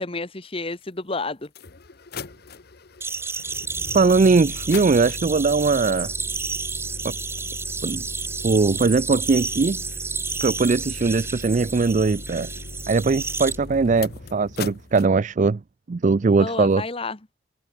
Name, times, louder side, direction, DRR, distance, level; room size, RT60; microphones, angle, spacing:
voice 1, 0.0-1.5 16.4-17.2, left 3 dB, 30° left, 1.3 m, -30 dB
sound 1, 0.8-0.9 1.4-15.1, left 3 dB, 55° left, 1.0 m, -39 dB
sound 2, 3.0-13.6, right 4 dB, 15° right, 1.2 m, -31 dB
voice 2, 3.9-6.1 7.0-7.1 7.8-8.0 8.4-9.8 10.4-12.5 12.9-15.6 15.9-16.8, right 4 dB, 40° right, 0.4 m, -20 dB
head